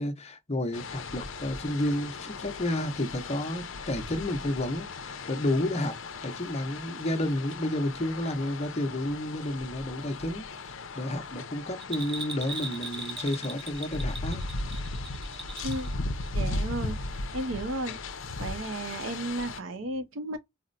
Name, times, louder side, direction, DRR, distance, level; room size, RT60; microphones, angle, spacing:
voice 1, 0.0-14.4, left 1 dB, 30° left, 0.8 m, -31 dB
sound 1, 0.7-19.6, left 2 dB, 65° left, 0.6 m, -37 dB
Bell, 11.8-15.9 16.2-16.3, right 3 dB, 25° right, 0.8 m, -39 dB
voice 2, 15.6-15.9 16.3-18.0 18.4-20.4, right 2 dB, 65° right, 0.6 m, -34 dB
4.2 x 2.1 x 2.5 m
head